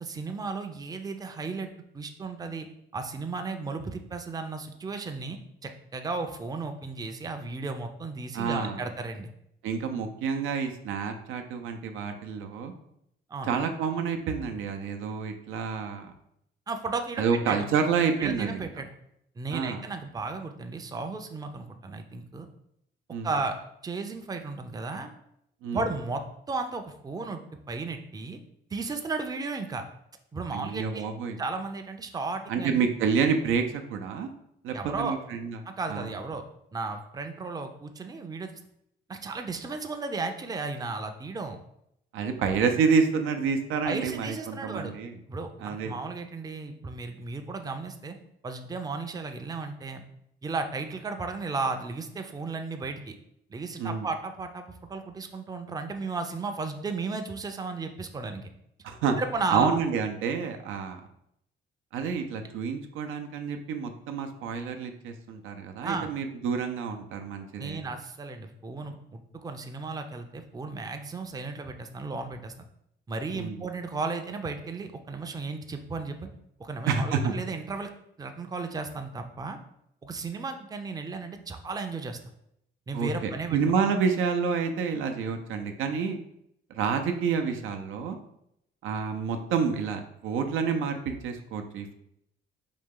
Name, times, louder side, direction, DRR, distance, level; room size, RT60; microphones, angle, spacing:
voice 1, 0.0-1.7 1.9-2.7 2.9-9.3 13.3-13.6 16.7-17.7 18.2-18.9 19.4-22.5 23.2-23.6 23.8-25.1 25.7-26.2 26.5-27.4 27.7-28.4 28.7-29.8 30.3-31.0 31.4-32.8 34.7-35.2 35.7-36.4 36.7-38.5 39.1-41.6 43.8-44.9 45.3-48.1 48.4-50.0 50.4-53.2 53.5-58.5 59.2-59.8 65.8-66.1 67.6-72.5 73.1-76.3 76.6-77.9 78.2-79.6 80.0-82.2 82.9-83.6, right 3 dB, 20° right, 6 dB, 0.5 m, -34 dB
voice 2, 8.3-8.8 9.6-12.7 13.5-16.1 17.2-18.7 19.5-19.8 23.1-23.3 25.6-25.8 30.5-31.4 32.5-33.6 33.9-34.3 34.6-35.6 35.9-36.1 42.1-45.1 45.6-45.9 53.8-54.1 58.8-59.2 59.5-61.0 61.9-67.8 73.3-73.6 76.9-77.3 82.9-86.2 86.7-88.2 88.8-91.9, right 6 dB, 85° right, 5 dB, 0.5 m, -28 dB
4.1 x 2.8 x 3.7 m, 0.76 s
cardioid pair, 90°, 20 cm